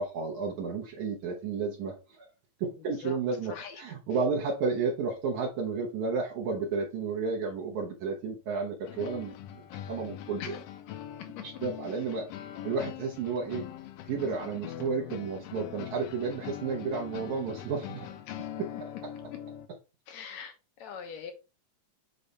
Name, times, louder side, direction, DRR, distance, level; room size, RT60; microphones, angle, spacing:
voice 1, 0.0-2.3 2.6-10.6 11.4-12.3 12.6-13.7 14.0-18.1 18.6-18.7, right 4 dB, 80° right, 2.5 m, -32 dB
voice 2, 2.9-3.2 3.5-3.8 10.4-10.6 11.4-11.5 11.8-12.0 18.3-18.4 18.7-18.8 20.1-21.3, left 7 dB, 70° left, 2.4 m, -42 dB
sound 1, 8.8-19.7, left 11 dB, 85° left, 1.4 m, -42 dB
7.0 x 3.3 x 4.0 m
omnidirectional pair, 3.3 m